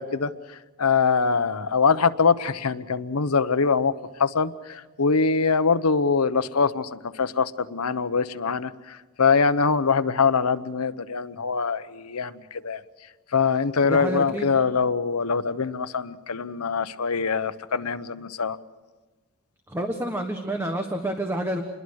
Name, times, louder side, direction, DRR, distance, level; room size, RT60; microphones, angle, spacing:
voice 1, 0.0-12.8 13.3-18.6, left 5 dB, 85° left, 12 dB, 0.9 m, -23 dB
voice 2, 13.9-14.5 19.7-21.6, right 1 dB, 10° right, 5 dB, 1.3 m, -28 dB
28.0 x 21.5 x 6.4 m, 1.2 s
head